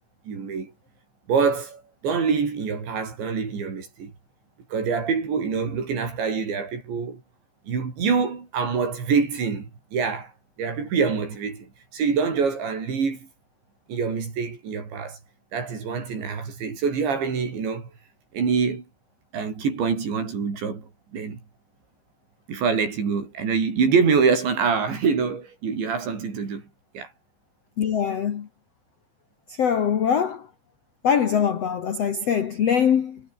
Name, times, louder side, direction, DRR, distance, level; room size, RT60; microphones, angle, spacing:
voice 1, 0.3-0.7 1.3-4.1 4.7-7.2 7.7-10.3 10.6-13.3 13.9-15.2 15.5-17.9 18.3-18.8 19.3-21.4 22.5-26.6 26.9-27.1, right 5 dB, 70° right, 8.4 m, -25 dB
voice 2, 27.8-28.5 29.5-30.5 31.0-33.2, left 7 dB, 80° left, 1.4 m, -22 dB
omnidirectional pair, 5.5 m